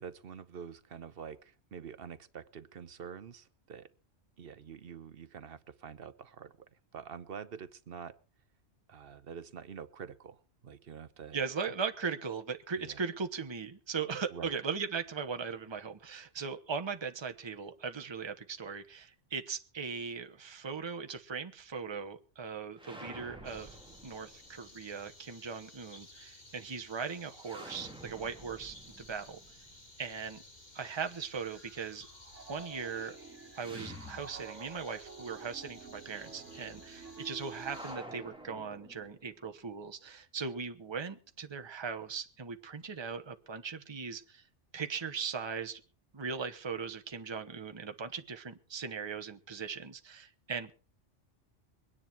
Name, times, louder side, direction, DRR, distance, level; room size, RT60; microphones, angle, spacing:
voice 1, 0.0-3.9 4.4-8.2 8.9-11.7 12.8-13.0 14.3-14.5, right 7 dB, 55° right, 13 dB, 1.0 m, -47 dB
voice 2, 11.3-23.8 24.0-29.4 30.0-30.4 30.7-32.1 32.5-33.2 33.5-44.4 44.7-45.8 46.1-50.7, right 5 dB, 25° right, 7 dB, 1.0 m, -39 dB
sound 1, 22.7-24.7 27.4-30.4 33.6-35.0 35.2-35.3 37.6-39.4, right 1 dB, 5° right, 2.1 m, -49 dB
sound 2, 23.4-38.0, left 2 dB, 35° left, 2.7 m, -56 dB
Piano, 30.8-37.8, right 5 dB, 80° right, 1.6 m, -50 dB
22.5 x 10.0 x 4.5 m, 0.36 s
omnidirectional pair, 1.2 m